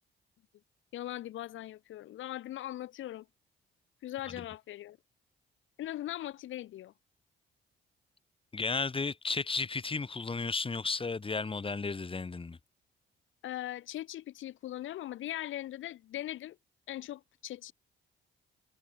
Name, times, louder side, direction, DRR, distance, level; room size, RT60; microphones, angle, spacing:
voice 1, 0.9-3.2 4.0-5.0 5.8-6.9 13.4-16.6 16.9-17.7, left 13 dB, 80° left, 3.2 m, -40 dB
voice 2, 8.5-12.6, left 4 dB, 25° left, 3.5 m, -33 dB
cardioid pair, 90°, 20 cm